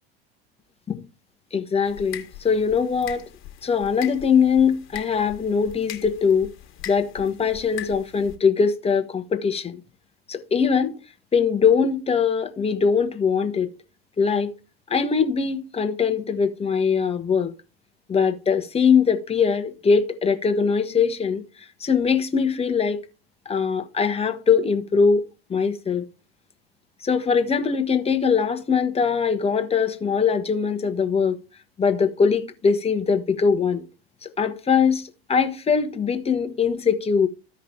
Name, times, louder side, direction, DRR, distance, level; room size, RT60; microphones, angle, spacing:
voice 1, 1.5-3.2 3.6-6.5 6.9-9.8 10.3-10.9 11.3-13.7 14.2-14.5 14.9-17.5 18.1-21.4 21.8-23.0 23.5-25.2 25.5-26.0 27.0-31.4 31.8-33.8 34.2-37.3, left 6 dB, 20° left, 1.0 m, -21 dB
sound 1, 1.8-8.4, left 11 dB, 40° left, 1.5 m, -40 dB
14.5 x 5.2 x 2.8 m
figure-of-eight pair, 75°, 30 cm